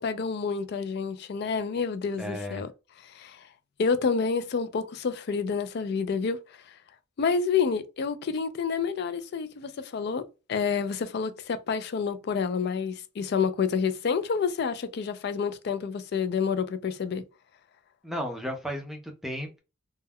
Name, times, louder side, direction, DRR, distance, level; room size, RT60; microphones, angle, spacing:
voice 1, 0.0-2.7 3.1-3.5 3.8-6.4 6.7-6.8 7.2-17.2, left 5 dB, 55° left, 0.3 m, -28 dB
voice 2, 2.2-2.6 18.0-19.6, equal, ahead, 0.5 m, -34 dB
2.2 x 2.1 x 3.4 m
head